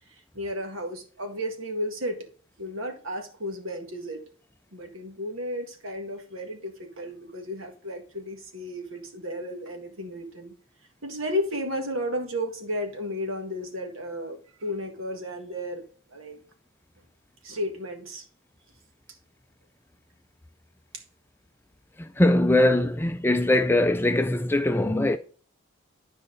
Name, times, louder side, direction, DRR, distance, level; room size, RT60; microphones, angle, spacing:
voice 1, 0.3-2.2 2.6-4.2 4.7-10.5 11.0-15.8 16.1-16.4 17.4-18.2, equal, 85° right, 1.9 m, -33 dB
voice 2, 22.0-25.2, left 1 dB, 10° left, 0.3 m, -21 dB
10.5 x 5.0 x 3.9 m
head